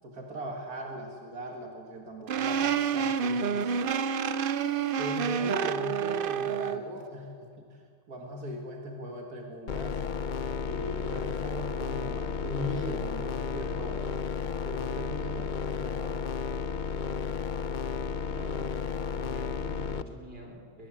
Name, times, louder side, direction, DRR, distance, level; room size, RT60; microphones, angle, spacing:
voice 1, 0.0-3.9 5.0-7.7 8.1-10.0 10.6-14.0 14.6-16.2, equal, 85° right, 1 dB, 2.3 m, -39 dB
sound 1, 2.3-6.8, right 7 dB, 55° right, 0.6 m, -28 dB
sound 2, 9.7-20.0, left 5 dB, 50° left, 0.5 m, -33 dB
voice 2, 18.3-20.9, right 1 dB, 40° right, 1 dB, 3.9 m, -46 dB
22.5 x 18.5 x 7.5 m, 2.3 s
omnidirectional pair, 1.6 m